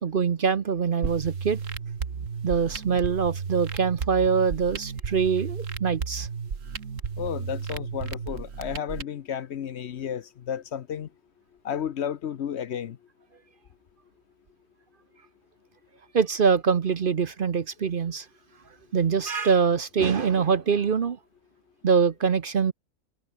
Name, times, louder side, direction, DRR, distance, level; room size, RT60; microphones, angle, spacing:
voice 1, 0.0-1.6 2.4-6.3 16.1-18.3 18.9-21.2 21.8-22.7, right 6 dB, 45° right, 0.9 m, -24 dB
sound 1, 1.0-9.0, right 6 dB, 75° right, 2.0 m, -33 dB
voice 2, 7.2-11.1 11.6-13.0, left 8 dB, 60° left, 0.9 m, -32 dB
omnidirectional pair, 1.4 m